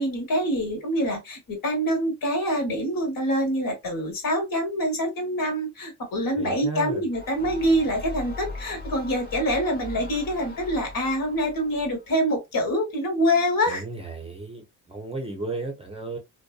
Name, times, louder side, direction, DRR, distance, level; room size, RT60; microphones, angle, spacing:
voice 1, 0.0-13.8, equal, 55° left, 1.3 m, -25 dB
voice 2, 6.4-7.0 13.7-16.2, right 3 dB, 15° right, 0.6 m, -34 dB
sound 1, 7.1-12.1, left 2 dB, 20° left, 1.0 m, -39 dB
2.5 x 2.2 x 2.3 m
cardioid pair, 85°, 41 cm